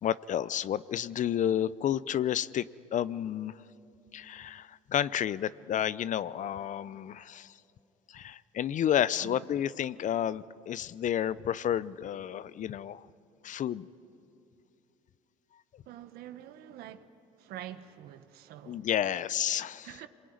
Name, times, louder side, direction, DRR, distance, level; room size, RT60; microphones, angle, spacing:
voice 1, 0.0-2.7 2.9-3.6 4.1-7.5 8.1-13.1 13.4-13.9 18.6-20.0, left 10 dB, 50° left, 0.7 m, -31 dB
voice 2, 15.9-17.1 17.4-19.2 19.8-20.1, right 11 dB, 70° right, 1.4 m, -46 dB
26.5 x 22.0 x 9.5 m
supercardioid pair, 70°, 17 cm